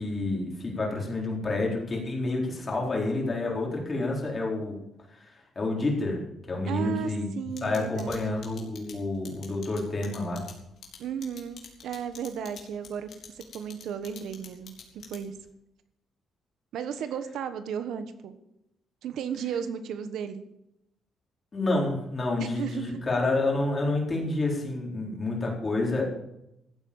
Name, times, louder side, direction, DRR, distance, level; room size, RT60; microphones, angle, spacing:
voice 1, 0.0-4.8 5.2-6.2 6.5-7.2 7.6-10.4 21.5-26.1, left 2 dB, 25° left, -1 dB, 4.2 m, -29 dB
voice 2, 6.7-8.2 11.0-13.1 13.3-15.3 16.7-18.4 19.0-20.4 22.4-23.0, right 8 dB, 75° right, 10 dB, 1.2 m, -34 dB
sound 1, 7.6-15.5, left 7 dB, 55° left, 3.6 m, -46 dB
15.0 x 8.6 x 7.1 m, 0.84 s
cardioid pair, 150°, 0 cm